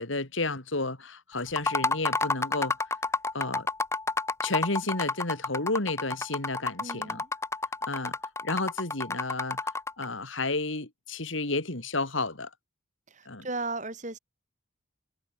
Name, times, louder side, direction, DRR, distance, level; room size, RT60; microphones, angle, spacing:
voice 1, 0.0-2.7 3.3-3.7 4.4-7.2 7.9-8.2 8.4-9.6 10.0-12.5 13.3-13.4, left 2 dB, 75° left, 3.2 m, -31 dB
sound 1, 1.5-10.1, left 3 dB, 15° left, 0.9 m, -30 dB
voice 2, 6.8-7.3 13.1-14.2, right 3 dB, 35° right, 5.3 m, -36 dB
head